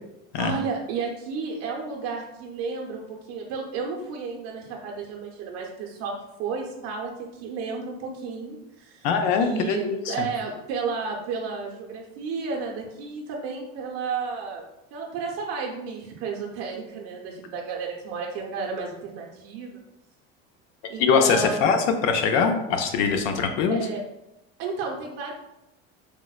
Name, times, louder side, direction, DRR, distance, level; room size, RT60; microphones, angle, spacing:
voice 1, 0.4-6.1 6.4-7.1 7.4-9.1 9.4-14.6 14.9-19.8 20.9-21.7 23.7-24.0 24.6-25.3, right 5 dB, 80° right, -1 dB, 0.6 m, -32 dB
voice 2, 9.0-10.1 21.0-23.8, left 5 dB, 75° left, 5 dB, 0.5 m, -22 dB
4.3 x 2.1 x 2.3 m, 0.89 s
cardioid pair, 155°, 31 cm